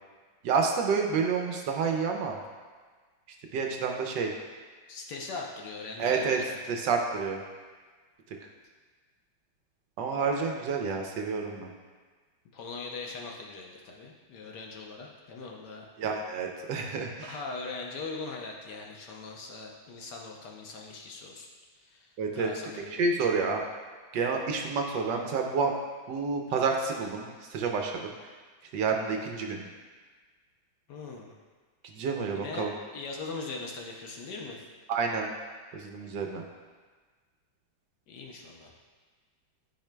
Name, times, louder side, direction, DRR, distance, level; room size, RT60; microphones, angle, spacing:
voice 1, 0.4-2.4 3.5-4.3 6.0-6.4 6.7-7.4 10.0-11.7 16.0-17.3 22.2-22.5 22.9-23.6 24.1-25.7 26.1-28.1 28.7-29.7 31.9-32.7 34.9-35.3 35.8-36.4, right 5 dB, 75° right, 2 dB, 1.2 m, -29 dB
voice 2, 4.9-6.6 12.5-15.9 17.2-21.5 21.8-23.4 30.9-31.3 32.4-34.6 38.1-38.7, left 3 dB, 65° left, 0 dB, 1.2 m, -41 dB
12.0 x 5.0 x 2.2 m, 1.4 s
omnidirectional pair, 2.1 m